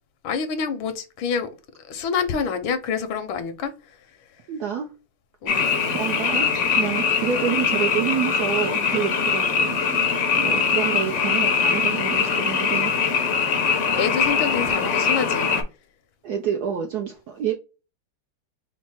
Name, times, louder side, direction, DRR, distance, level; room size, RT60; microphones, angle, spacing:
voice 1, 0.2-1.5 1.9-3.7 5.4-5.8 13.9-15.5, left 6 dB, 75° left, 1.5 m, -27 dB
voice 2, 4.5-4.9 5.6-6.5 6.8-10.0 10.4-12.9 16.2-17.5, right 8 dB, 70° right, 0.9 m, -28 dB
Frog, 5.5-15.6, left 5 dB, 60° left, 0.7 m, -22 dB
4.5 x 2.0 x 4.2 m
omnidirectional pair, 2.3 m